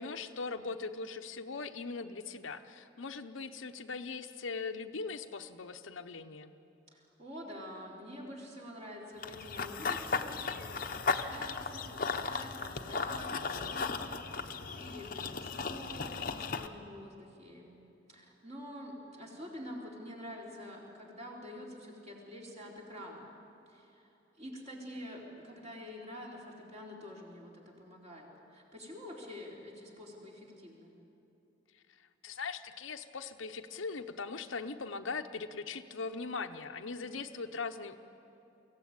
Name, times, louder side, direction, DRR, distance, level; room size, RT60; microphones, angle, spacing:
voice 1, 0.0-6.5 32.2-38.0, left 4 dB, 85° left, 7 dB, 0.9 m, -40 dB
voice 2, 6.9-17.8 18.1-23.3 23.7-24.1 24.4-27.5 27.8-30.9, equal, 35° right, -2 dB, 3.9 m, -47 dB
Run / Bird vocalization bird call bird song, 9.2-16.7, left 4 dB, 45° left, 0.9 m, -36 dB
24.0 x 16.0 x 8.8 m, 2.8 s
head